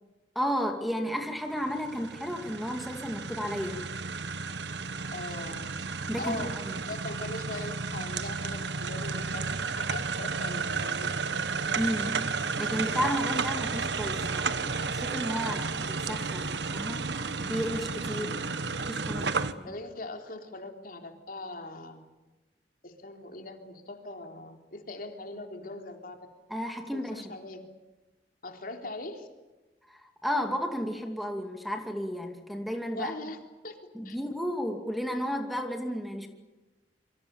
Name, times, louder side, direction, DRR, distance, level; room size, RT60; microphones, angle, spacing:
voice 1, 0.3-3.8 6.1-6.8 11.7-12.2 12.6-17.0 17.4-18.6 18.9-19.7 26.5-27.3 29.9-33.1 33.9-36.3, equal, ahead, 4 dB, 2.5 m, -33 dB
sound 1, 1.5-19.5, right 4 dB, 75° right, 1.3 m, -32 dB
voice 2, 5.1-5.7 6.2-11.1 18.1-18.4 19.6-22.1 22.8-26.2 26.9-27.6 28.4-29.3 32.9-34.2, left 2 dB, 55° left, 4 dB, 3.7 m, -41 dB
27.5 x 24.5 x 7.3 m, 1.1 s
head